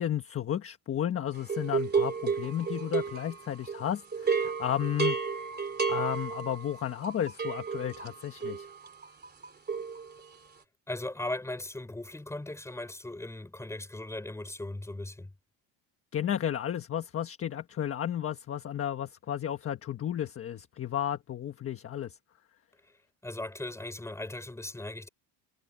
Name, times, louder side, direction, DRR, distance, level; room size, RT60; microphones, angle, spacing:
voice 1, 0.0-5.2 5.9-8.7 16.1-22.2, left 10 dB, 30° left, 1.4 m, -33 dB
sound 1, 1.5-3.8 4.1-10.5, right 5 dB, 20° right, 3.1 m, -32 dB
voice 2, 10.9-15.3 23.2-25.1, left 2 dB, 5° left, 4.7 m, -38 dB
cardioid pair, 165°, 47 cm